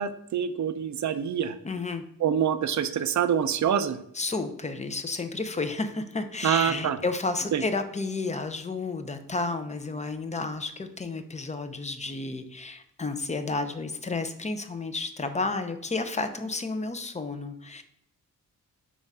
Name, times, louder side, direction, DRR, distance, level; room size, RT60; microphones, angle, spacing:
voice 1, 0.0-1.6 2.2-4.0 6.4-7.0 7.5-7.6, right 8 dB, 55° right, 11 dB, 0.5 m, -26 dB
voice 2, 1.6-2.0 4.1-17.8, left 3 dB, 20° left, 8 dB, 0.5 m, -31 dB
7.1 x 2.4 x 5.4 m, 0.75 s
wide cardioid pair, 125°, 34 cm